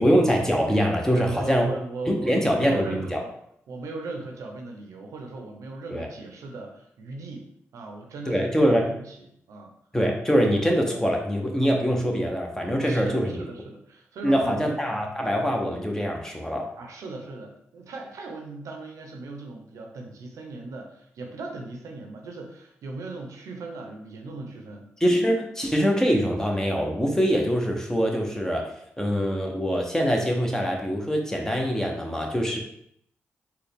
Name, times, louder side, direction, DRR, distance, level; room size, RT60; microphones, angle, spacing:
voice 1, 0.0-1.7 2.1-3.2 5.9-6.1 8.3-8.9 9.9-13.4 14.2-16.7 25.0-28.7 29.0-32.6, equal, 10° left, 1 dB, 0.9 m, -23 dB
voice 2, 1.1-3.3 3.7-9.7 12.8-14.7 16.8-24.9, right 2 dB, 80° right, 2 dB, 0.6 m, -38 dB
4.0 x 2.3 x 3.5 m, 0.72 s
supercardioid pair, 50°, 5 cm